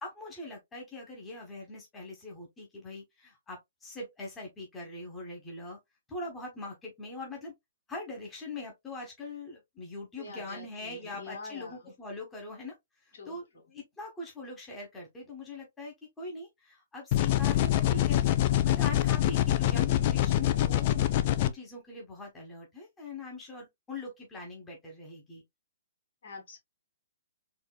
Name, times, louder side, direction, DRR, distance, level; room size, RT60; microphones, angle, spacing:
voice 1, 0.0-5.8 6.1-7.5 7.9-18.2 18.6-25.4, left 2 dB, 15° left, 1.2 m, -42 dB
voice 2, 10.2-11.9 13.1-13.4 26.2-26.6, left 3 dB, 65° left, 2.2 m, -45 dB
sound 1, 17.1-21.5, left 13 dB, 40° left, 0.4 m, -25 dB
4.4 x 2.7 x 2.2 m
hypercardioid pair, 145°, 0 cm